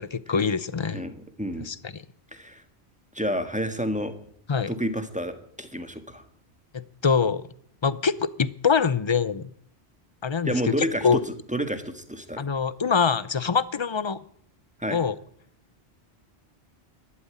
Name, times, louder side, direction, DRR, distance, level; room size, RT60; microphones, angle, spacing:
voice 1, 0.0-1.0 1.6-2.0 4.5-4.7 6.7-7.5 7.8-9.5 10.2-10.5 11.0-11.2 12.4-14.2 14.9-15.2, left 6 dB, 35° left, 17 dB, 0.5 m, -24 dB
voice 2, 0.9-1.7 2.3-2.6 3.1-4.1 4.7-6.2 10.4-11.2 11.5-12.5 14.8-15.0, equal, 5° right, 8 dB, 1.5 m, -29 dB
12.0 x 12.0 x 8.9 m, 0.65 s
omnidirectional pair, 1.1 m